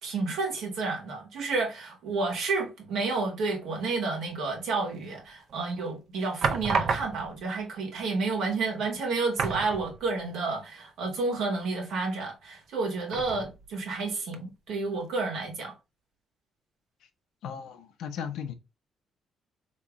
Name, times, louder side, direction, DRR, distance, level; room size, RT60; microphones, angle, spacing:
voice 1, 0.0-15.7, right 3 dB, 85° right, 1.4 m, -30 dB
sound 1, 5.2-5.6 6.4-7.5 8.4-8.5 8.8-9.0 9.3-10.3 10.7-10.8 13.1-13.8 14.3-14.4, right 5 dB, 60° right, 0.5 m, -31 dB
voice 2, 17.4-18.5, left 7 dB, 80° left, 0.7 m, -36 dB
3.6 x 3.0 x 2.9 m
cardioid pair, 90°, 0 cm